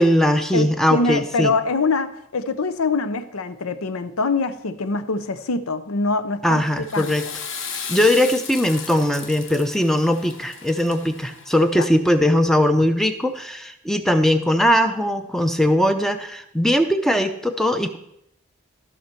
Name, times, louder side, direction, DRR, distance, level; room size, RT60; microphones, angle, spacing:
voice 1, 0.0-1.5 6.4-7.3 7.9-18.0, equal, ahead, 8 dB, 0.5 m, -20 dB
voice 2, 0.5-6.6 6.9-7.3 11.8-11.9, left 3 dB, 90° left, 12 dB, 0.7 m, -24 dB
Water / Toilet flush, 6.7-11.9, left 6 dB, 65° left, 1.1 m, -35 dB
14.5 x 5.9 x 4.5 m, 0.78 s
head